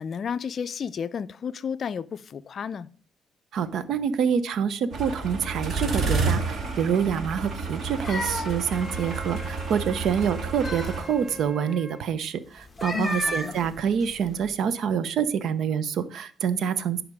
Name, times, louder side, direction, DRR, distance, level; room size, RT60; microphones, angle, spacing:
voice 1, 0.0-2.9 12.9-13.6, left 7 dB, 55° left, 0.5 m, -32 dB
voice 2, 3.5-17.0, right 7 dB, 70° right, 0.8 m, -26 dB
sound 1, 4.9-11.0, right 4 dB, 55° right, 2.1 m, -30 dB
sound 2, 7.7-9.8 10.3-11.5 12.6-14.5, left 1 dB, 20° left, 1.3 m, -35 dB
Wind instrument woodwind instrument, 8.7-12.1, left 2 dB, 10° right, 0.9 m, -42 dB
11.0 x 5.1 x 4.8 m
cardioid pair, 90°, 0 cm